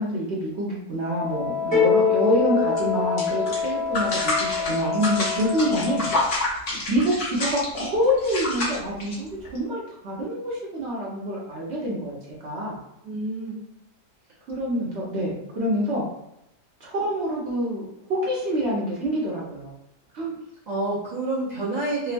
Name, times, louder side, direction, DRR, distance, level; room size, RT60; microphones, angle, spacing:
voice 1, 0.0-6.1 6.9-12.2 12.4-12.8 14.5-16.1 16.8-17.8 18.1-19.7 20.1-20.3, equal, 55° right, -4 dB, 0.8 m, -26 dB
Wind instrument woodwind instrument, 1.0-6.2, left 5 dB, 80° left, 1.1 m, -28 dB
sound 1, 1.7-3.7, left 7 dB, 25° right, 1.0 m, -24 dB
sound 2, 2.7-2.8 3.2-9.6, left 2 dB, 45° left, 0.9 m, -28 dB
voice 2, 13.0-13.6 20.7-22.1, right 2 dB, 85° right, -8 dB, 0.3 m, -28 dB
2.9 x 2.1 x 2.5 m, 0.82 s
omnidirectional pair, 1.6 m